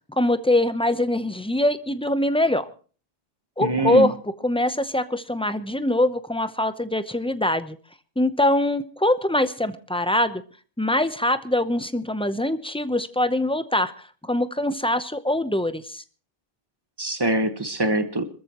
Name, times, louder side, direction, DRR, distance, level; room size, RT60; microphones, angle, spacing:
voice 1, 0.1-2.7 3.6-4.1 4.4-7.8 8.2-10.4 10.8-16.0, left 1 dB, 5° left, 11 dB, 0.6 m, -23 dB
voice 2, 3.6-4.1 17.0-18.3, right 1 dB, 25° right, 9 dB, 1.3 m, -24 dB
26.0 x 14.0 x 3.0 m, 0.39 s
omnidirectional pair, 1.0 m